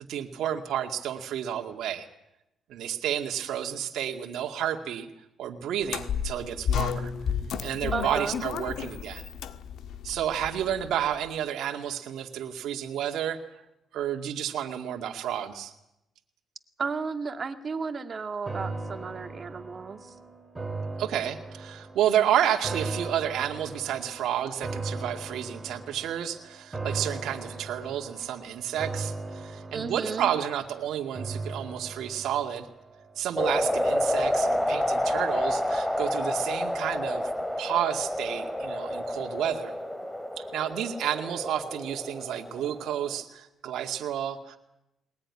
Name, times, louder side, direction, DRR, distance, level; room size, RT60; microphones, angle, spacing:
voice 1, 0.0-2.1 2.7-5.1 5.4-7.1 7.6-9.2 10.0-13.4 13.9-15.7 21.0-32.7 33.2-37.3 37.6-39.7 40.4-44.6, right 10 dB, 80° right, 3 dB, 2.1 m, -30 dB
sound 1, 5.8-11.1, left 8 dB, 75° left, 1.7 m, -32 dB
voice 2, 7.9-8.4 16.8-20.1 29.7-30.3, right 5 dB, 40° right, 7 dB, 2.1 m, -33 dB
sound 2, 18.5-33.8 34.1-34.2, right 3 dB, 20° right, 5.7 m, -38 dB
sound 3, 33.4-43.2, left 1 dB, 5° left, 3.2 m, -29 dB
21.5 x 20.0 x 9.8 m, 0.86 s
cardioid pair, 90°, 0 cm